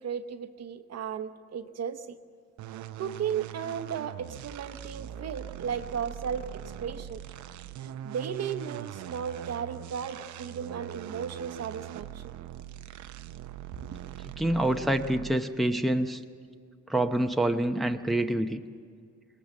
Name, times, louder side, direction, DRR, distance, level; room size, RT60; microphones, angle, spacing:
voice 1, 0.0-2.2 3.0-7.2 7.8-12.3 13.7-13.9, right 7 dB, 55° right, 9 dB, 1.0 m, -35 dB
sound 1, 2.6-15.6, right 10 dB, 70° right, 0.7 m, -42 dB
voice 2, 14.4-16.2 16.9-18.6, right 1 dB, ahead, 5 dB, 0.8 m, -26 dB
20.5 x 19.0 x 7.2 m, 2.1 s
cardioid pair, 90°, 30 cm